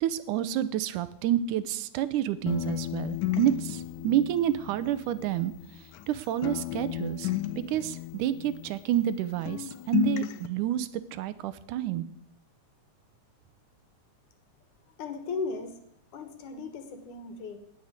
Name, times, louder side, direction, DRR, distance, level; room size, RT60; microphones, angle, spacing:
voice 1, 0.0-5.5 6.1-12.1, right 11 dB, 80° right, 15 dB, 2.3 m, -29 dB
sound 1, 2.5-6.1 6.4-9.2 9.5-10.5, left 15 dB, 90° left, 2.5 m, -34 dB
voice 2, 15.0-15.8 16.1-17.6, left 4 dB, 75° left, 8 dB, 2.9 m, -36 dB
18.5 x 6.5 x 8.2 m, 0.75 s
omnidirectional pair, 3.6 m